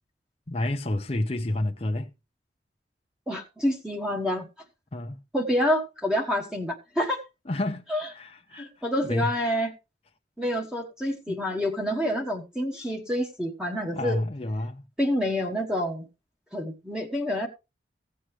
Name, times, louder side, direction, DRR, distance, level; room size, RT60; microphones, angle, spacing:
voice 1, 0.5-2.1 4.9-5.2 7.5-7.8 8.1-8.7 9.0-9.3 11.3-11.4 13.9-14.8, left 1 dB, 35° left, 0.7 m, -29 dB
voice 2, 3.3-4.5 5.3-7.2 7.9-8.0 8.5-9.7 10.4-14.2 15.0-16.1 16.5-17.5, equal, 5° right, 1.2 m, -27 dB
16.0 x 7.6 x 3.2 m
head